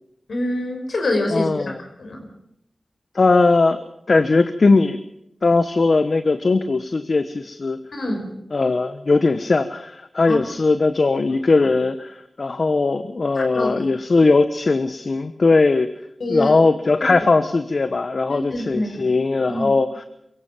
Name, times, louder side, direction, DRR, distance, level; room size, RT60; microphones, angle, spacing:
voice 1, 0.3-1.7 2.0-2.3 8.0-8.3 10.3-10.4 13.4-13.8 16.2-16.6 17.0-17.1 18.3-19.0 19.5-19.7, left 1 dB, 80° left, 4 dB, 5.2 m, -25 dB
voice 2, 1.3-1.8 3.1-5.0 5.4-7.8 8.5-15.9 16.3-20.0, left 3 dB, 60° left, 10 dB, 1.1 m, -19 dB
23.5 x 16.5 x 7.5 m, 0.77 s
cardioid pair, 50°, 0 cm